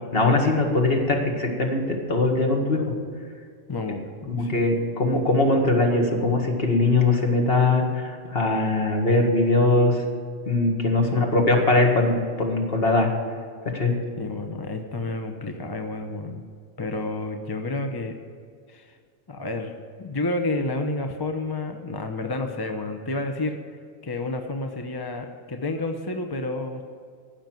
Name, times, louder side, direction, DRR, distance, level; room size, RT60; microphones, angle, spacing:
voice 1, 0.1-2.8 4.3-10.0 10.5-13.1 13.7-13.9, left 2 dB, 50° left, 1 dB, 2.0 m, -21 dB
voice 2, 3.7-4.6 11.0-11.5 14.2-16.4 16.8-18.2 18.7-18.9 19.3-19.7 20.0-23.6 24.0-26.8, left 2 dB, 20° left, 5 dB, 0.7 m, -30 dB
15.0 x 6.0 x 9.2 m, 2.2 s
omnidirectional pair, 1.3 m